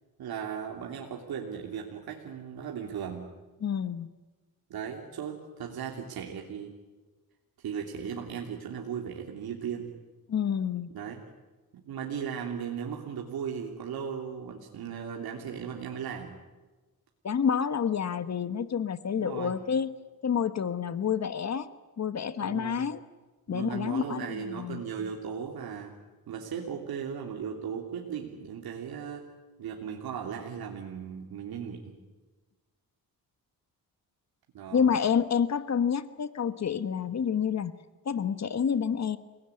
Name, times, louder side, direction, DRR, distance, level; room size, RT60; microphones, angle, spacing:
voice 1, 0.2-3.3 4.7-6.7 7.6-9.9 10.9-11.2 11.7-16.4 19.2-19.6 22.4-22.8 23.5-25.9 26.3-29.3 29.6-32.0 34.5-34.9, right 7 dB, 80° right, 1 dB, 3.1 m, -37 dB
voice 2, 3.6-4.1 10.3-10.9 17.2-19.9 20.2-21.7 22.0-23.0 23.5-25.1 34.7-37.7 38.0-39.2, left 7 dB, 45° left, 13 dB, 1.2 m, -28 dB
29.0 x 18.5 x 9.8 m, 1.2 s
cardioid pair, 105°, 36 cm